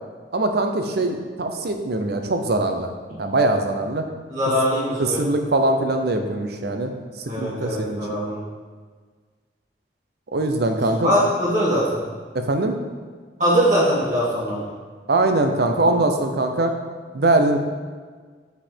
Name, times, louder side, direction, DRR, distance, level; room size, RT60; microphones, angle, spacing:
voice 1, 0.3-2.9 3.2-4.0 5.0-6.9 7.3-8.0 10.3-11.2 12.3-12.8 15.1-16.7 17.1-17.6, right 2 dB, 65° right, 5 dB, 0.7 m, -22 dB
voice 2, 4.3-5.2 7.3-8.4 11.0-12.0 13.4-14.6, equal, 45° right, -8 dB, 1.9 m, -21 dB
5.4 x 4.9 x 4.5 m, 1.5 s
head